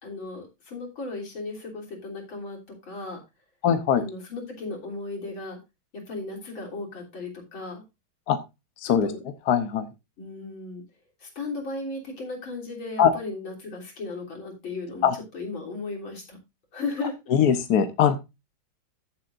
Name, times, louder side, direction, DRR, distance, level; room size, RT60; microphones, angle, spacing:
voice 1, 0.0-3.2 4.0-5.6 5.9-7.8 8.9-9.2 10.2-10.8 11.2-16.4 16.7-17.2, left 3 dB, 75° left, -1 dB, 4.2 m, -36 dB
voice 2, 3.6-4.0 8.3-8.4 8.9-9.1 9.5-9.8 13.0-13.1 15.0-15.1 17.3-18.2, left 8 dB, 60° left, 8 dB, 1.3 m, -20 dB
14.5 x 7.7 x 2.6 m, 0.24 s
omnidirectional pair, 2.2 m